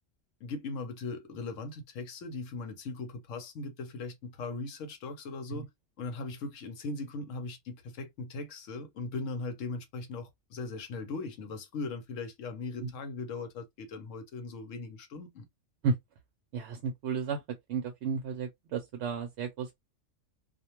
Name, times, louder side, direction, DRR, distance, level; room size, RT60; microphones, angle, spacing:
voice 1, 0.4-5.7 6.0-15.4, left 3 dB, 80° left, 1.0 m, -39 dB
voice 2, 16.5-17.4 17.7-19.7, right 5 dB, 65° right, 0.8 m, -33 dB
2.4 x 2.2 x 2.8 m
omnidirectional pair, 1.3 m